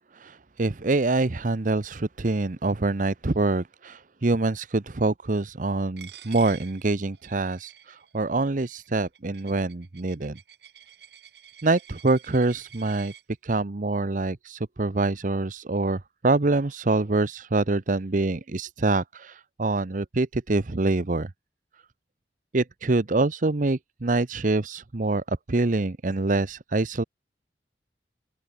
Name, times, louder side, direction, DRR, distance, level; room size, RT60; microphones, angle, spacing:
voice 1, 0.1-10.4 11.6-13.1 13.4-21.3 22.5-27.0, right 2 dB, 45° right, 0.8 m, -25 dB
Coin (dropping), 6.0-13.2, right 9 dB, 70° right, 2.5 m, -49 dB
open air
head